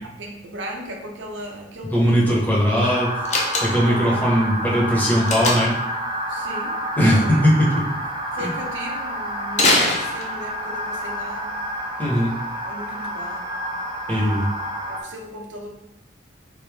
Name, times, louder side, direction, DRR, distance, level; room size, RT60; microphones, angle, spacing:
voice 1, 0.0-2.4 2.7-3.2 3.8-4.5 6.3-6.8 7.2-7.7 8.3-11.6 12.6-13.8 14.1-15.7, right 1 dB, 85° right, 1 dB, 0.6 m, -36 dB
voice 2, 1.9-3.1 3.6-5.7 7.0-7.7 8.4-8.5 12.0-12.3 14.1-14.5, equal, 10° left, -5 dB, 0.9 m, -19 dB
sound 1, 2.8-15.0, equal, 25° right, 0.4 m, -29 dB
Slam, 3.3-4.0 5.3-5.9 9.5-10.6, left 2 dB, 40° left, 0.6 m, -21 dB
3.3 x 2.7 x 3.4 m, 0.86 s
head